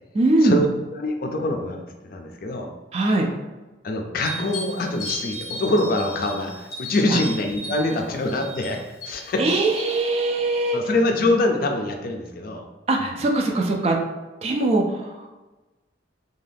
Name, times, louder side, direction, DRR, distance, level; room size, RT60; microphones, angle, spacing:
voice 1, 0.1-0.6 2.9-3.3 9.4-10.8 12.9-14.0 14.4-14.8, right 2 dB, 35° right, 1 dB, 0.3 m, -21 dB
voice 2, 0.9-2.7 3.8-9.7 10.7-12.6 13.0-13.2, left 1 dB, 55° left, 3 dB, 0.4 m, -24 dB
sound 1, 4.2-10.0, equal, 20° left, 0.7 m, -36 dB
2.6 x 2.2 x 3.3 m, 1.2 s
head